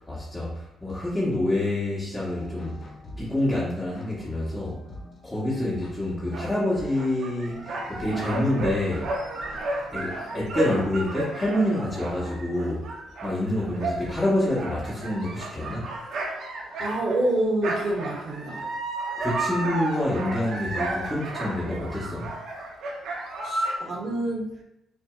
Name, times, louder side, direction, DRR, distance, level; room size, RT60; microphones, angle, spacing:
voice 1, 0.0-2.8 3.2-4.8 5.2-7.6 7.9-9.1 9.9-12.9 13.2-15.9 19.2-22.3, left 1 dB, 15° left, -8 dB, 1.2 m, -27 dB
sound 1, 2.2-12.1, left 1 dB, 50° left, 1.2 m, -48 dB
sound 2, 6.3-17.4 17.6-23.8, right 2 dB, 70° right, 0.7 m, -33 dB
voice 2, 16.8-18.6 23.4-24.6, right 1 dB, 55° right, -1 dB, 1.1 m, -27 dB
5.8 x 2.8 x 2.4 m, 0.88 s
cardioid pair, 90°, 0 cm